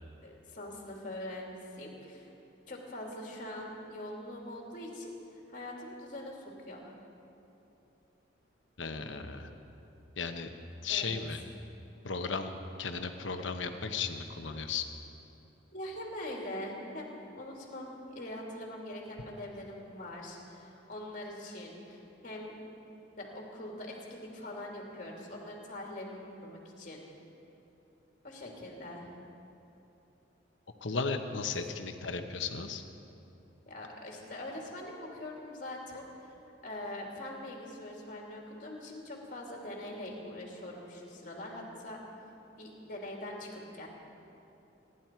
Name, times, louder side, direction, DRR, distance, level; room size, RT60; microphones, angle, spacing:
voice 1, 0.2-2.3 2.7-6.9 10.9-11.2 15.7-22.5 23.2-27.0 28.2-29.1 33.7-36.3 36.6-42.0 42.6-43.9, left 1 dB, 45° left, -1 dB, 2.8 m, -43 dB
voice 2, 8.8-9.5 10.2-10.5 10.8-11.4 12.0-14.8 30.8-32.8, left 5 dB, 75° left, 6 dB, 1.1 m, -35 dB
27.0 x 11.0 x 4.6 m, 2.9 s
head